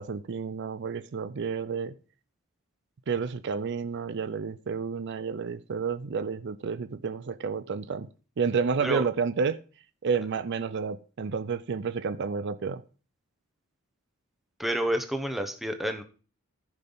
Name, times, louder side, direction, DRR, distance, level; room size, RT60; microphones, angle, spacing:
voice 1, 0.0-1.9 3.1-8.1 8.4-9.6 10.0-12.8, right 5 dB, 55° right, 14 dB, 0.4 m, -30 dB
voice 2, 14.6-16.0, equal, ahead, 6 dB, 0.9 m, -29 dB
14.0 x 5.6 x 3.9 m, 0.37 s
head